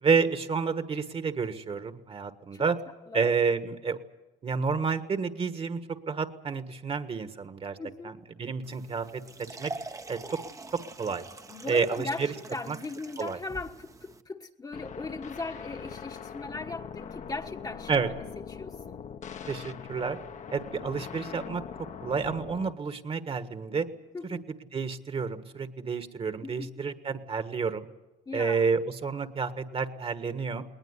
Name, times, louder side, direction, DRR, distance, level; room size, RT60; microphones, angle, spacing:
voice 1, 0.0-2.8 3.1-4.0 4.4-5.8 6.1-7.8 8.0-9.2 9.6-9.7 10.1-10.4 11.0-11.2 11.7-12.3 12.7-12.8 13.2-13.4 17.9-18.1 19.5-20.2 20.5-21.6 22.0-23.9 24.3-24.4 24.7-27.9 28.3-30.6, right 5 dB, 35° right, 1.6 m, -29 dB
voice 2, 7.8-8.1 11.5-19.0 24.1-24.4 26.4-26.7 28.3-28.7, left 3 dB, 20° left, 1.3 m, -39 dB
sound 1, 8.6-14.2, right 3 dB, 20° right, 0.9 m, -44 dB
sound 2, 14.7-22.7, left 7 dB, 45° left, 1.2 m, -42 dB
20.0 x 20.0 x 9.8 m
cardioid pair, 110°, 17 cm